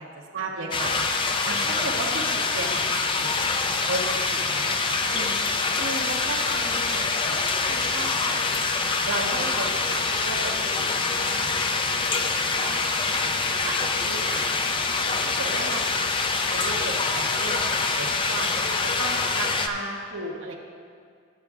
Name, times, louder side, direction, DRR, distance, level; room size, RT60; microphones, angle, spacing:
voice 1, 0.3-4.0 4.3-5.4 5.8-8.4 9.0-12.8 13.2-16.1 16.5-20.5, right 2 dB, 75° right, -4 dB, 0.9 m, -35 dB
sound 1, 0.7-19.7, left 4 dB, 25° left, 0.4 m, -25 dB
13.0 x 9.0 x 2.4 m, 2.1 s
head